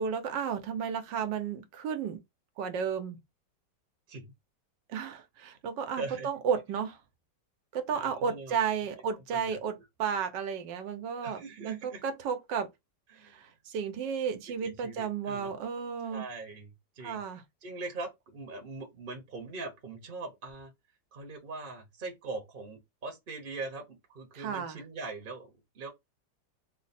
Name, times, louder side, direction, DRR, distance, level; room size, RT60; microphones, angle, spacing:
voice 1, 0.0-2.2 2.6-3.2 4.9-7.0 7.7-12.7 13.2-16.2 17.0-17.4 24.3-24.8, right 7 dB, 85° right, 1.4 m, -33 dB
voice 2, 6.0-6.3 7.9-8.6 9.1-9.6 11.2-12.0 13.1-13.4 14.6-15.5 16.1-17.2 17.6-20.7 21.1-25.9, right 3 dB, 40° right, 0.9 m, -41 dB
3.6 x 2.1 x 4.1 m
omnidirectional pair, 1.9 m